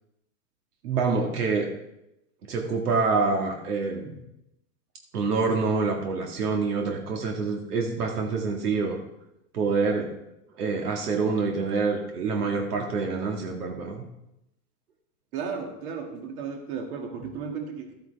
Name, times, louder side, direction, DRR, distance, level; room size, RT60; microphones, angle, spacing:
voice 1, 0.8-1.7 2.5-4.2 5.1-9.0 9.5-10.1 10.6-14.0, right 4 dB, 90° right, 1 dB, 2.0 m, -26 dB
voice 2, 15.3-17.9, right 6 dB, 70° right, 2 dB, 2.4 m, -34 dB
13.5 x 9.0 x 3.5 m, 0.85 s
supercardioid pair, 135°, 45 cm